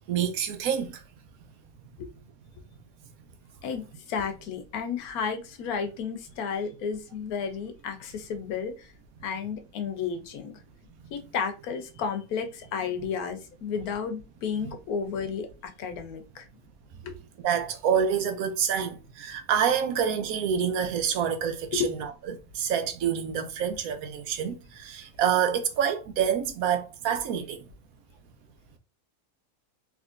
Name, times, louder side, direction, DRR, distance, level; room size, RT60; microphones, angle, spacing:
voice 1, 0.1-1.0 17.4-22.1 22.5-27.7, right 8 dB, 80° right, 1.1 m, -27 dB
voice 2, 3.6-8.9 9.2-10.5 11.1-16.5 17.0-17.2 21.7-21.9, left 6 dB, 85° left, 1.1 m, -32 dB
3.6 x 2.9 x 2.4 m
omnidirectional pair, 1.5 m